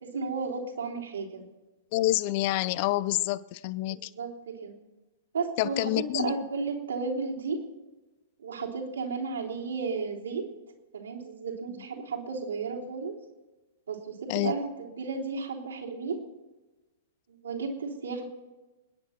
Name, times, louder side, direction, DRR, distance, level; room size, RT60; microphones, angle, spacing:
voice 1, 0.0-1.4 3.9-4.7 5.3-7.6 8.4-10.5 10.9-13.2 13.9-16.2 17.4-18.2, right 4 dB, 75° right, 3.4 m, -33 dB
voice 2, 1.9-4.1 5.6-6.3 14.3-14.5, left 16 dB, 45° left, 0.5 m, -27 dB
28.0 x 10.0 x 4.4 m
figure-of-eight pair, 110°, 0 cm